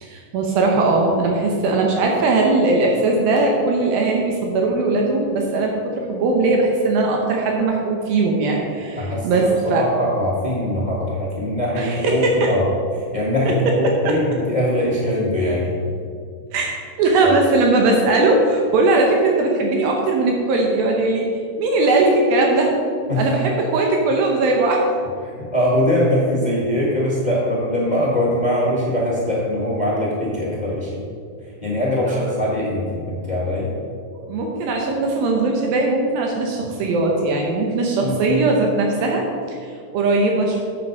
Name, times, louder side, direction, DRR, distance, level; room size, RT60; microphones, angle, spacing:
voice 1, 0.0-9.9 11.8-12.5 13.8-14.2 16.5-21.3 21.6-22.7 23.2-24.8 32.0-32.3 34.3-40.6, right 2 dB, 80° right, 0 dB, 2.7 m, -19 dB
voice 2, 9.0-12.6 12.9-15.7 17.2-17.3 23.1-23.2 25.4-31.0 31.4-33.7 38.0-38.3, left 1 dB, 45° left, -6 dB, 0.5 m, -22 dB
7.9 x 7.5 x 5.2 m, 2.3 s
omnidirectional pair, 4.1 m